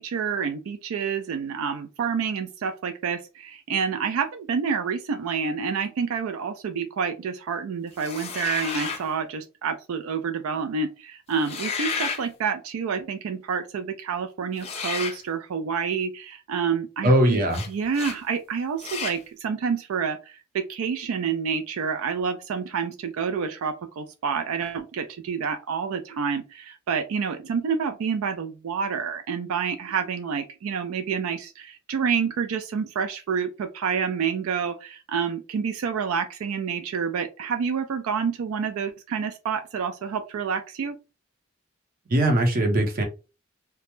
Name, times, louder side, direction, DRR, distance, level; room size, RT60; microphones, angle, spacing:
voice 1, 0.0-17.4 17.7-41.0, right 6 dB, 90° right, 8 dB, 0.4 m, -28 dB
sound 1, 8.0-9.1 11.3-12.2 14.6-15.2 17.5-17.7 17.9-18.2 18.8-19.2, left 5 dB, 30° left, 0.5 m, -31 dB
voice 2, 17.0-17.6 42.1-43.0, right 1 dB, 45° right, 3 dB, 0.7 m, -20 dB
2.2 x 2.0 x 3.0 m, 0.30 s
head